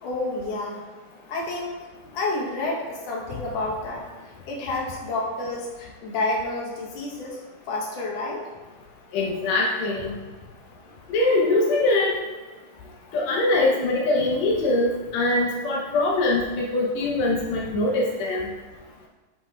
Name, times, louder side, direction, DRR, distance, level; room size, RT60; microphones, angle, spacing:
voice 1, 0.0-0.8 1.3-1.8 2.1-4.0 4.5-7.4 7.7-8.4, left 2 dB, 65° left, -2 dB, 1.6 m, -29 dB
voice 2, 9.1-10.1 11.1-12.1 13.1-18.4, left 2 dB, 85° left, -2 dB, 1.5 m, -22 dB
8.7 x 5.2 x 2.3 m, 1.3 s
omnidirectional pair, 4.0 m